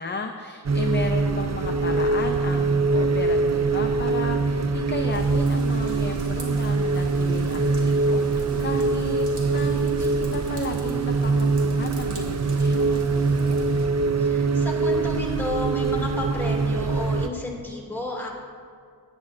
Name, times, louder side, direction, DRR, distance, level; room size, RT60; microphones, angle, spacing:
voice 1, 0.0-13.8, left 4 dB, 25° left, 4 dB, 0.5 m, -35 dB
sound 1, 0.7-17.3, right 3 dB, 40° right, 0.5 m, -23 dB
Raindrop / Vehicle horn car horn honking / Trickle dribble, 5.1-13.9, right 1 dB, 70° right, 2.0 m, -44 dB
voice 2, 14.2-18.3, left 2 dB, 5° left, -3 dB, 2.3 m, -32 dB
18.5 x 9.6 x 2.5 m, 2.2 s
wide cardioid pair, 120°, 42 cm